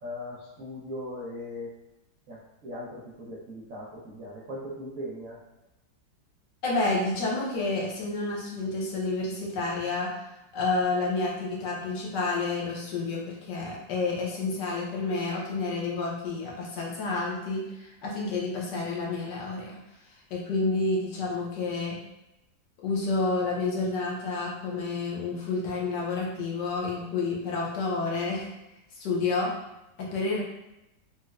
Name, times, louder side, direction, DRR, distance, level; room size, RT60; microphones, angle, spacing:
voice 1, 0.0-1.7 2.3-5.4, left 1 dB, 80° right, -6 dB, 0.7 m, -39 dB
voice 2, 6.6-10.2 10.5-19.8 20.3-22.0 22.8-28.5 29.0-29.5 30.0-30.4, left 3 dB, 70° left, -3 dB, 1.2 m, -29 dB
4.0 x 2.1 x 2.3 m, 0.93 s
omnidirectional pair, 2.1 m